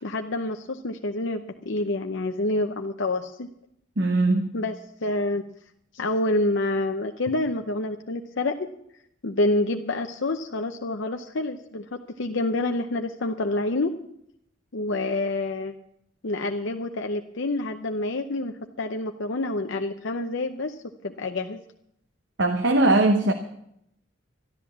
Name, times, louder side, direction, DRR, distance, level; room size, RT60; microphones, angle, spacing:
voice 1, 0.0-3.5 4.5-5.4 5.9-8.7 9.2-13.9 14.7-15.7 16.2-21.6, left 2 dB, 65° left, 0.7 m, -28 dB
voice 2, 4.0-4.5 22.4-23.3, right 2 dB, 60° right, 0.9 m, -20 dB
13.0 x 10.5 x 7.2 m
head